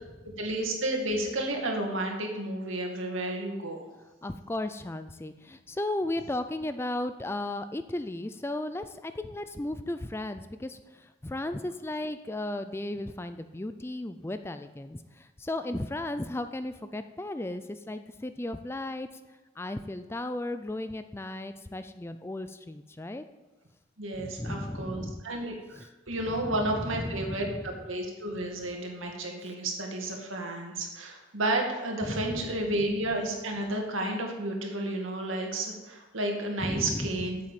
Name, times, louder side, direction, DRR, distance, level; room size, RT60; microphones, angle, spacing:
voice 1, 0.4-3.9 24.0-37.4, right 1 dB, 85° right, 1 dB, 2.2 m, -32 dB
voice 2, 4.2-19.1 19.6-23.3 24.1-25.2 25.8-25.9 26.3-27.6 29.4-29.5 32.0-32.4 36.6-37.3, left 1 dB, 10° left, 10 dB, 0.4 m, -35 dB
8.9 x 7.6 x 7.4 m, 1.1 s
head